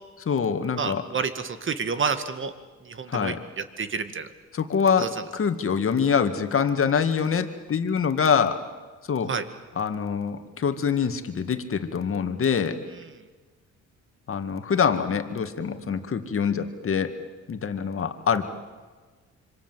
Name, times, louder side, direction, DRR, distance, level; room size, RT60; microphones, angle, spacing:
voice 1, 0.3-1.1 3.1-3.4 4.5-8.6 9.1-9.3 9.8-12.8 14.3-17.1 17.5-18.5, left 6 dB, 45° left, 8 dB, 2.2 m, -25 dB
voice 2, 0.8-2.5 2.9-3.3 3.8-4.3 5.0-5.1 9.3-9.4, right 5 dB, 40° right, 10 dB, 2.0 m, -29 dB
26.0 x 25.5 x 7.7 m, 1.4 s
cardioid pair, 90°, 30 cm